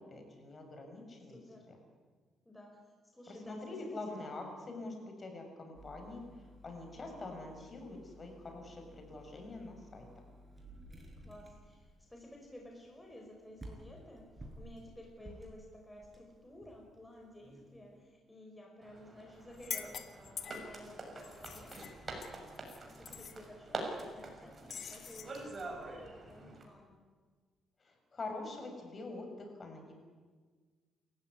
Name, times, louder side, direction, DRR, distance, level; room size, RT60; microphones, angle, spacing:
voice 1, 0.1-1.4 1.7-1.8 3.3-10.1 27.8-29.9, left 2 dB, 35° left, 3 dB, 6.9 m, -45 dB
voice 2, 1.3-1.7 2.4-2.8 3.1-4.2 6.9-7.4 11.2-21.9 23.0-27.0, left 1 dB, 10° left, 1 dB, 4.9 m, -54 dB
sound 1, 5.7-18.0, right 1 dB, 20° right, 6.9 m, -55 dB
sound 2, 18.8-26.6, right 2 dB, 35° right, 6.5 m, -46 dB
sound 3, 19.5-20.8 21.2-22.8 23.0-23.4 24.7-25.3, left 7 dB, 55° left, 2.1 m, -45 dB
28.5 x 15.0 x 9.9 m, 1.5 s
cardioid pair, 90°, 0 cm